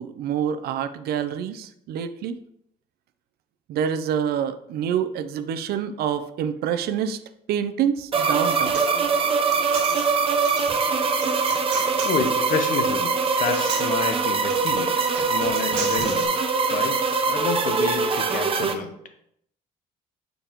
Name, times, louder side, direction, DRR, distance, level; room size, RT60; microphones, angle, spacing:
voice 1, 0.0-2.4 3.7-7.2 7.5-8.8, right 8 dB, 70° right, 11 dB, 0.5 m, -27 dB
sound 1, 8.1-18.7, right 4 dB, 35° right, 0.7 m, -23 dB
Human voice, 8.3-16.3, right 5 dB, 90° right, 1.5 m, -36 dB
voice 2, 12.0-14.9 15.3-16.4 16.7-17.0 17.3-18.9, left 6 dB, 55° left, 7 dB, 0.9 m, -29 dB
6.7 x 5.2 x 3.0 m, 0.73 s
cardioid pair, 110°, 17 cm